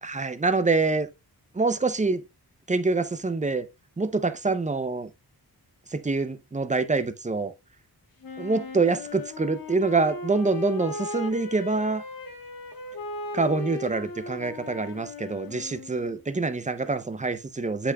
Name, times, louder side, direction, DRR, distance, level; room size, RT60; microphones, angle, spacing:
voice 1, 0.0-1.1 1.5-2.2 2.7-3.6 4.0-5.1 5.9-7.5 8.4-12.0 13.3-17.9, right 3 dB, 20° right, 0.5 m, -26 dB
Wind instrument woodwind instrument, 8.2-16.2, left 3 dB, 60° left, 1.3 m, -37 dB
8.0 x 6.1 x 2.2 m
wide cardioid pair, 135°, 39 cm